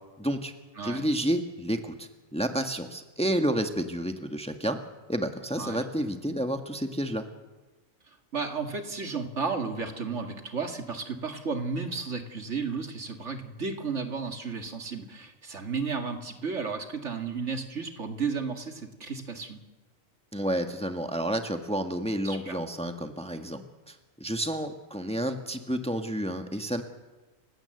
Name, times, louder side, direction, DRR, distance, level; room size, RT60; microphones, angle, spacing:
voice 1, 0.2-0.5 0.8-4.8 5.1-7.2 20.3-23.9 24.2-26.8, right 1 dB, 5° left, 6 dB, 1.5 m, -30 dB
voice 2, 8.3-19.6 22.2-22.6, right 5 dB, 65° right, 5 dB, 2.4 m, -33 dB
30.0 x 16.5 x 7.9 m, 1.1 s
omnidirectional pair, 1.4 m